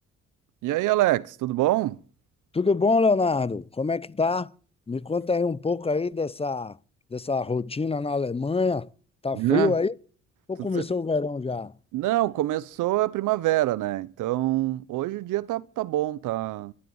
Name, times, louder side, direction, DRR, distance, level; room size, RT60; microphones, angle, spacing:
voice 1, 0.6-2.0 9.3-9.7 10.6-10.8 11.9-16.7, right 16 dB, 90° right, 0.9 m, -25 dB
voice 2, 2.5-4.5 4.9-6.8 7.1-8.9 9.2-9.9 10.5-11.7, left 4 dB, 20° left, 0.7 m, -25 dB
13.0 x 13.0 x 7.1 m
cardioid pair, 90°, 30 cm